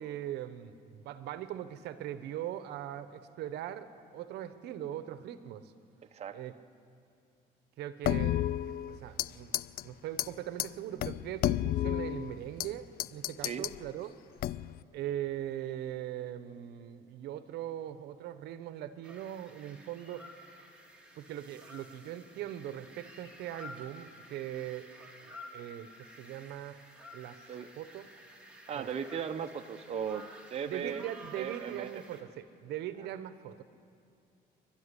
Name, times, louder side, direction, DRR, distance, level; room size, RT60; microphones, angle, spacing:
voice 1, 0.0-5.7 6.3-6.6 7.8-9.6 9.8-14.1 14.9-20.3 21.2-24.9 25.2-26.8 27.1-27.4 27.8-28.1 28.7-28.9 30.6-33.6, right 12 dB, 80° right, 12 dB, 1.0 m, -40 dB
voice 2, 6.1-6.6 13.4-13.7 27.5-27.7 28.7-31.1 31.3-32.2 33.0-33.1, right 7 dB, 40° right, 5 dB, 1.0 m, -38 dB
sound 1, 8.0-9.3 9.5-9.8 10.2-10.3 10.6-10.7 11.0-12.7 13.0-13.8 14.4-14.8, left 13 dB, 65° left, 0.4 m, -31 dB
sound 2, 19.0-32.2, equal, 5° right, 3.2 m, -52 dB
26.5 x 12.5 x 9.8 m, 2.4 s
cardioid pair, 110°, 17 cm